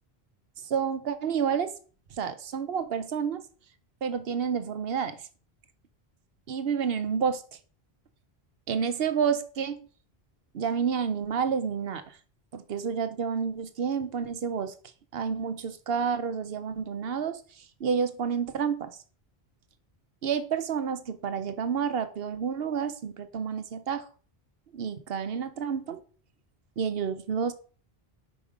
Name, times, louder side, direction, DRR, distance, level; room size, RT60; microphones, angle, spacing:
voice 1, 0.6-1.7 2.2-3.4 4.0-5.2 6.5-7.4 8.7-9.8 10.5-12.2 12.5-14.7 15.1-18.9 20.2-24.1 24.7-26.0 26.8-27.5, right 7 dB, 70° right, 0.9 m, -29 dB
5.2 x 5.1 x 4.8 m
omnidirectional pair, 1.0 m